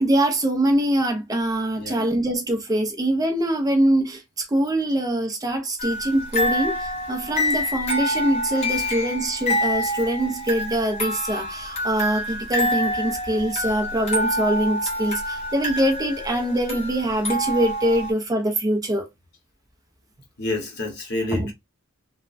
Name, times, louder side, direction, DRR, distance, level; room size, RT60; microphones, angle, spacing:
voice 1, 0.0-19.1 21.3-21.5, right 1 dB, 15° right, 0.4 m, -23 dB
voice 2, 1.8-2.2 8.5-9.0 9.8-9.9 20.4-21.5, left 2 dB, 50° left, 1.1 m, -30 dB
What Child is This, 5.8-18.1, left 1 dB, 30° left, 0.9 m, -27 dB
3.1 x 2.0 x 2.4 m
head